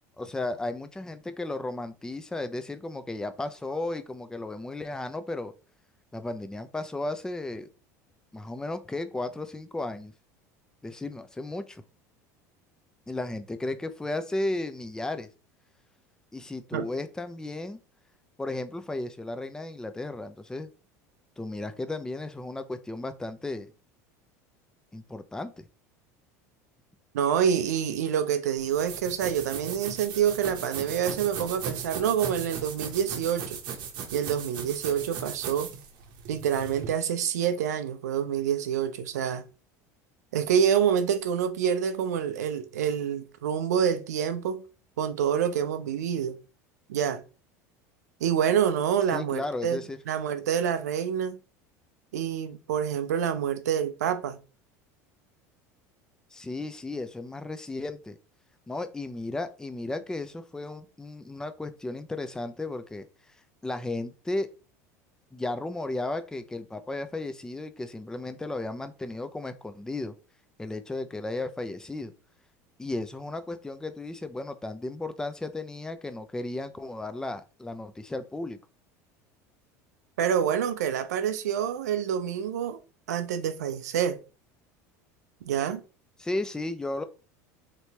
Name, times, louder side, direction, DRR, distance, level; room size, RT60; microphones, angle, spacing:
voice 1, 0.2-5.5 6.1-7.7 8.3-10.1 10.8-11.8 13.1-15.3 16.3-17.8 18.4-20.7 21.4-23.7 24.9-25.7 49.1-50.0 56.3-58.2 58.7-63.1 63.6-64.5 65.3-70.1 70.6-72.1 72.8-78.6 86.2-87.0, left 2 dB, 10° left, 0.4 m, -34 dB
voice 2, 27.1-33.6 34.1-35.7 36.3-39.4 40.3-44.6 45.0-46.4 46.9-47.2 48.2-49.8 50.1-51.4 52.1-54.4 80.2-82.8 83.1-84.2 85.4-85.8, right 8 dB, 85° right, 0.5 m, -27 dB
sound 1, 28.6-36.9, right 7 dB, 60° right, 0.8 m, -37 dB
3.3 x 2.9 x 2.8 m
hypercardioid pair, 90°, 9 cm